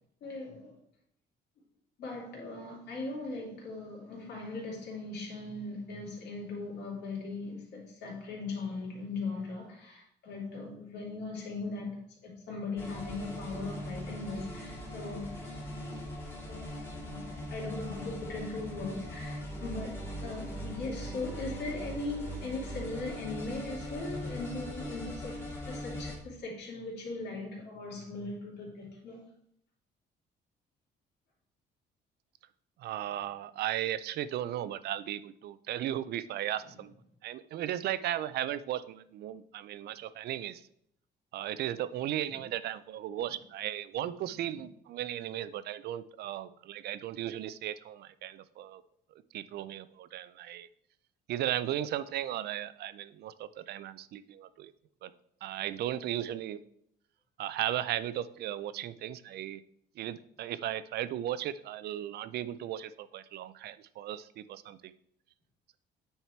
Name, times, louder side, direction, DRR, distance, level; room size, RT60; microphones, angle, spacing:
voice 1, 0.2-0.7 2.0-15.3 16.3-29.2, left 3 dB, 65° left, -3 dB, 3.0 m, -39 dB
sound 1, 12.8-26.2, equal, 15° left, 2.2 m, -40 dB
voice 2, 32.8-37.0 37.2-40.6 41.3-48.8 49.3-50.7 51.3-54.7 55.0-55.1 55.4-56.6 57.4-59.6 60.0-64.9, right 12 dB, 60° right, 15 dB, 0.4 m, -36 dB
9.1 x 4.3 x 4.5 m, 0.70 s
cardioid pair, 155°, 19 cm